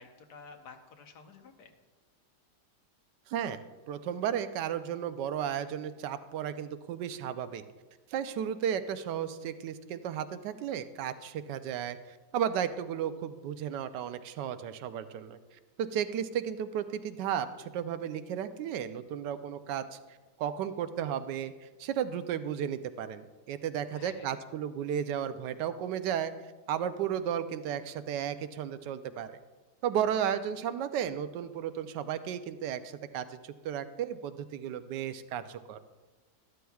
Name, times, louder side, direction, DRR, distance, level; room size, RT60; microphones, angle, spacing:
voice 1, 0.0-1.7 23.9-24.4, left 4 dB, 75° left, 5 dB, 1.5 m, -51 dB
voice 2, 3.3-3.6 3.9-7.6 8.1-15.4 15.8-20.0 20.4-26.3 26.7-29.4 29.8-35.8, right 9 dB, 90° right, 11 dB, 1.2 m, -34 dB
12.5 x 12.5 x 2.3 m, 1.3 s
omnidirectional pair, 1.8 m